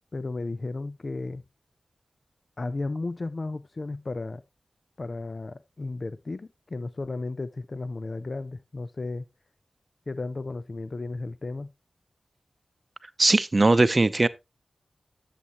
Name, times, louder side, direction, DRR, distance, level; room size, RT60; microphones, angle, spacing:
voice 1, 0.1-1.4 2.6-4.4 5.0-9.3 10.1-11.7, left 3 dB, 50° left, 0.5 m, -34 dB
voice 2, 13.2-14.3, right 2 dB, 40° right, 0.7 m, -19 dB
11.0 x 7.2 x 3.0 m
cardioid pair, 45°, 0 cm